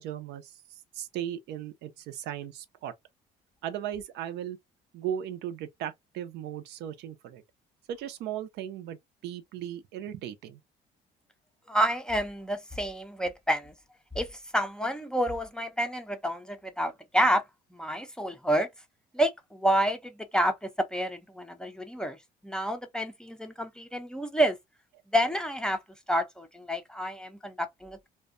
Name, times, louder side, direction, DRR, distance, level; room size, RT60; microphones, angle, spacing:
voice 1, 0.0-2.9 3.6-4.6 4.9-7.4 7.9-9.0 9.2-10.6, right 10 dB, 80° right, 0.5 m, -37 dB
voice 2, 11.7-13.7 14.2-17.4 17.7-18.7 19.1-22.2 22.4-24.6 25.1-25.8 26.1-28.1, equal, 5° left, 0.4 m, -29 dB
2.5 x 2.1 x 2.4 m
cardioid pair, 110°, 17 cm